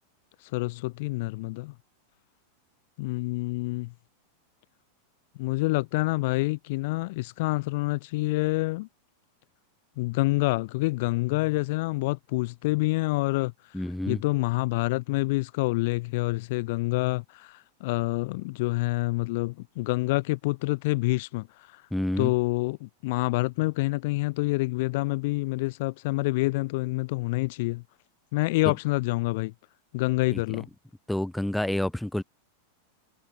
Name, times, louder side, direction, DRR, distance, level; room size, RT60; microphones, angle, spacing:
voice 1, 0.5-1.7 3.0-3.9 5.4-8.9 10.0-13.5 14.1-21.5 21.7-21.8 22.2-27.8 28.3-29.5 29.9-30.7, left 22 dB, 50° left, 0.3 m, -27 dB
voice 2, 13.7-14.2 21.9-22.3 28.7-28.8 30.3-30.4 31.1-32.2, left 1 dB, 5° left, 0.6 m, -28 dB
figure-of-eight pair, 90°, 0 cm